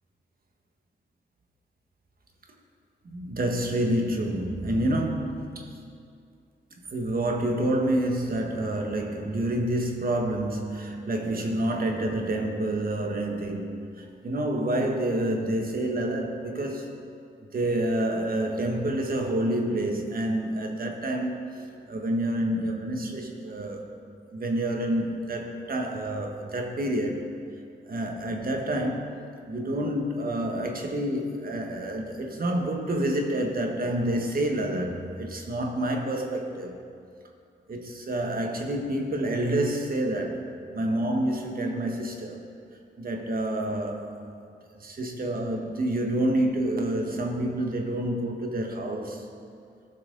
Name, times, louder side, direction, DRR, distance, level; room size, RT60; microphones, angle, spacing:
voice 1, 3.0-5.7 6.9-17.0 17.5-23.9 24.3-27.2 27.9-29.2 29.5-36.8 37.7-40.4 40.7-42.4 43.0-44.1 44.8-49.2, right 1 dB, 50° right, 2 dB, 1.4 m, -28 dB
17.0 x 6.0 x 3.9 m, 2.4 s
cardioid pair, 70°, 19 cm